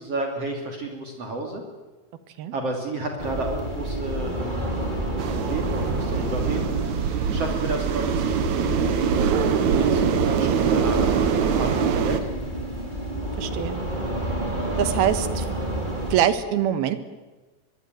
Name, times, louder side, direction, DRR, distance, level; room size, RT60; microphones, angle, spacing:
voice 1, 0.0-1.6 2.5-4.7 5.1-12.3, right 2 dB, 45° right, 3 dB, 3.6 m, -32 dB
sound 1, 3.2-16.2, right 1 dB, 10° right, 4.0 m, -29 dB
sound 2, 5.2-12.2, right 7 dB, 60° right, 2.5 m, -23 dB
voice 2, 13.4-13.8 14.8-15.4 16.1-17.0, right 10 dB, 85° right, 11 dB, 3.4 m, -23 dB
23.0 x 23.0 x 9.3 m, 1.2 s
omnidirectional pair, 4.3 m